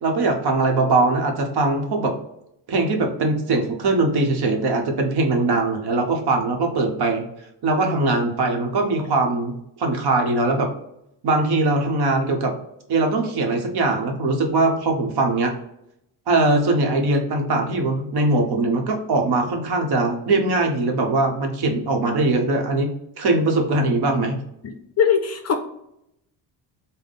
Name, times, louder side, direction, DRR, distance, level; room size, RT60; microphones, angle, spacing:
voice 1, 0.0-2.1 2.7-7.2 7.6-10.7 11.2-12.5 12.9-15.5 16.3-22.9 23.2-24.4, right 2 dB, 55° right, 3 dB, 0.9 m, -21 dB
voice 2, 24.6-25.6, left 7 dB, 35° left, 5 dB, 0.4 m, -21 dB
3.6 x 2.1 x 3.9 m, 0.80 s
cardioid pair, 100°, 45 cm